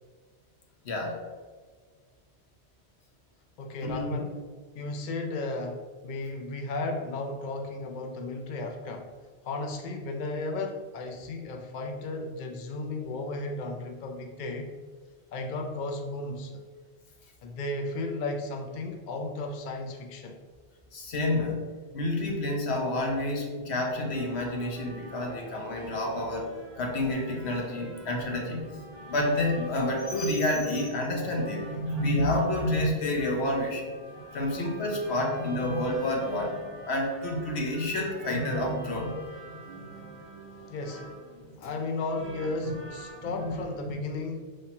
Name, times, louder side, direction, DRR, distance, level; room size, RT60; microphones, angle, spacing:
voice 1, 0.8-1.2 3.8-4.2 20.9-21.6 21.9-26.5 26.8-28.6 29.1-33.9 34.3-36.6 36.8-39.9 41.3-41.7 42.6-42.7 43.2-43.6 43.9-44.0, left 1 dB, 70° left, 0 dB, 1.1 m, -29 dB
voice 2, 3.6-4.4 4.7-9.1 9.4-14.7 15.3-16.6 17.4-20.4 40.7-41.0 41.6-44.4, left 2 dB, 55° left, 3 dB, 0.5 m, -34 dB
sound 1, 24.0-43.7, right 2 dB, 60° right, 1.1 m, -46 dB
5.6 x 3.2 x 2.8 m, 1.5 s
omnidirectional pair, 1.2 m